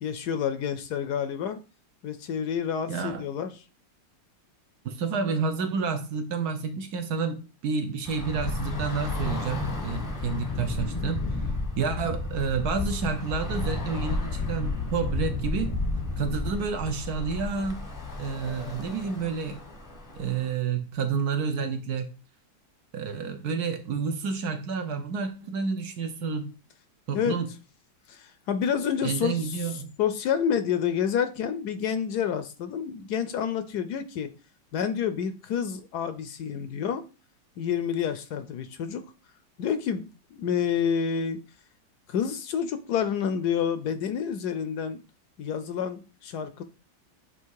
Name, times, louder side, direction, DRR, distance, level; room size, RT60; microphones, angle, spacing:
voice 1, 0.0-1.6 2.0-3.5 27.1-27.4 28.1-34.3 34.7-37.0 37.6-39.0 39.6-41.4 42.1-45.0 45.4-46.6, left 8 dB, 70° left, 10 dB, 1.1 m, -29 dB
voice 2, 2.9-3.3 4.8-11.3 11.8-15.7 16.2-17.8 18.2-19.6 20.2-22.1 22.9-26.5 27.1-27.5 29.0-29.9, right 5 dB, 65° right, 6 dB, 1.3 m, -30 dB
Bus / Traffic noise roadway noise, 8.1-20.5, left 2 dB, 15° left, 0.8 m, -32 dB
8.2 x 2.8 x 4.6 m, 0.33 s
omnidirectional pair, 2.0 m